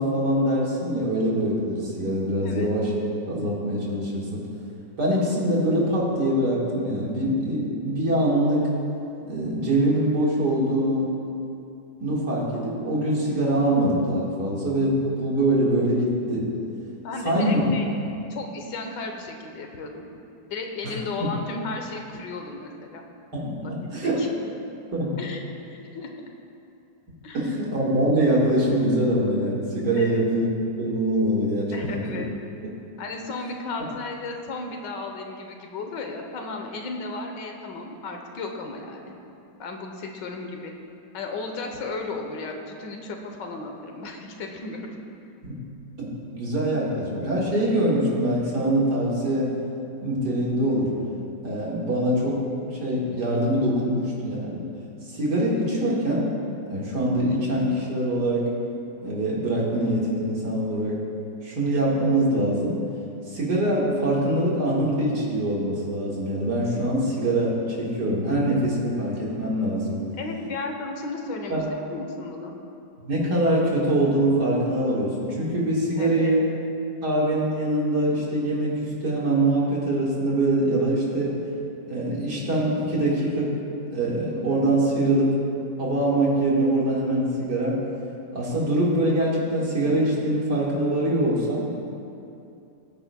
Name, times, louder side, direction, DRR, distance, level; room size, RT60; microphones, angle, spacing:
voice 1, 0.0-2.9 3.3-4.4 5.0-8.7 9.2-11.1 12.0-16.5 17.2-17.6 20.8-21.3 23.3-24.2 24.9-25.2 27.3-30.5 30.8-32.2 45.4-45.5 46.0-49.5 50.0-50.9 51.4-52.4 52.7-54.7 55.1-56.3 56.7-58.5 59.0-61.0 61.4-62.8 63.3-70.0 71.5-71.6 73.0-76.4 77.0-81.4 81.9-83.5 83.9-85.4 85.8-87.8 88.3-91.7, right 1 dB, 70° right, -5 dB, 2.5 m, -24 dB
voice 2, 2.3-2.7 17.0-17.9 18.3-20.0 20.5-23.0 23.6-23.7 24.0-24.3 25.2-26.1 27.2-27.5 29.9-30.3 31.7-32.3 33.0-39.1 39.6-40.7 41.1-44.8 70.1-72.6 76.0-76.4, left 3 dB, 85° left, 3 dB, 1.7 m, -34 dB
20.5 x 9.3 x 2.3 m, 2.7 s
omnidirectional pair, 1.9 m